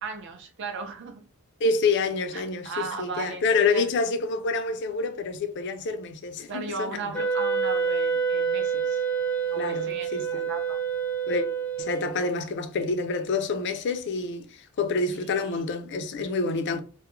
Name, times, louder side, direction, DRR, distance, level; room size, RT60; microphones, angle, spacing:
voice 1, 0.0-1.3 2.3-3.9 6.5-9.0 9.5-10.8 15.1-15.7, right 4 dB, 55° right, 0.5 m, -36 dB
voice 2, 1.6-6.9 9.6-10.5 11.3-11.5 11.8-14.5 14.8-16.8, left 4 dB, 55° left, 0.4 m, -27 dB
Wind instrument woodwind instrument, 7.1-12.3, right 6 dB, 5° left, 0.5 m, -27 dB
2.2 x 2.1 x 3.0 m
head